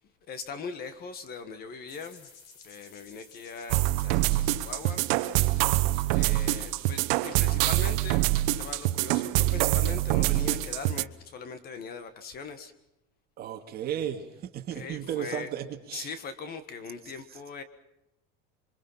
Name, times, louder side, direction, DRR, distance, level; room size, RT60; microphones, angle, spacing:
voice 1, 0.3-2.3 2.6-5.1 6.1-12.7 14.7-15.5 15.9-17.6, left 5 dB, 30° left, 1.6 m, -40 dB
sound 1, 1.9-8.6, left 5 dB, 60° left, 6.2 m, -55 dB
sound 2, 3.7-11.0, right 17 dB, 70° right, 1.1 m, -25 dB
voice 2, 13.4-16.1, right 10 dB, 30° right, 2.3 m, -34 dB
27.5 x 24.0 x 5.8 m
cardioid pair, 175°, 30 cm